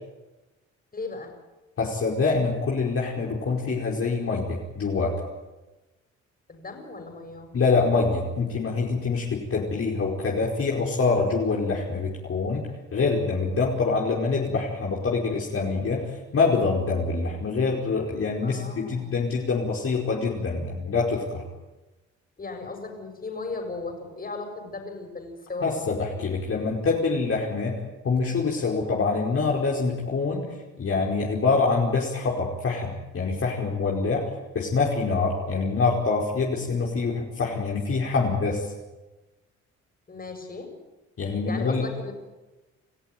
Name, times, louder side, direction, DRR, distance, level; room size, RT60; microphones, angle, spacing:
voice 1, 0.9-1.3 6.5-7.5 18.4-19.2 22.4-25.7 40.1-40.7 41.5-42.1, left 3 dB, 30° left, 4 dB, 6.8 m, -36 dB
voice 2, 1.8-5.1 7.5-16.0 16.3-21.4 25.6-27.7 28.0-30.4 30.8-34.2 34.5-38.7 41.2-41.8, left 4 dB, 50° left, -3 dB, 5.1 m, -25 dB
28.0 x 15.0 x 9.4 m, 1.1 s
cardioid pair, 90°, 30 cm